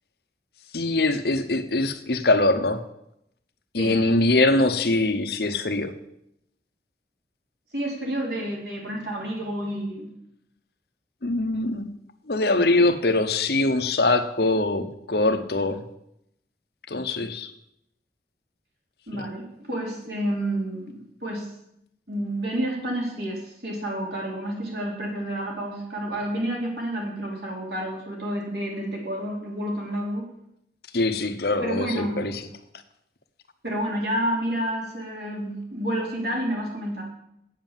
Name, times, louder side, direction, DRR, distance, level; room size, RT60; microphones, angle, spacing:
voice 1, 0.7-2.8 3.7-5.9 11.2-11.9 12.3-15.8 16.9-17.5 19.1-19.3 30.9-32.4, left 2 dB, 60° left, 9 dB, 0.9 m, -23 dB
voice 2, 7.7-10.1 19.1-21.5 22.1-30.3 31.6-32.1 33.6-37.0, right 1 dB, 65° right, -1 dB, 3.4 m, -29 dB
8.6 x 7.4 x 7.4 m, 0.77 s
head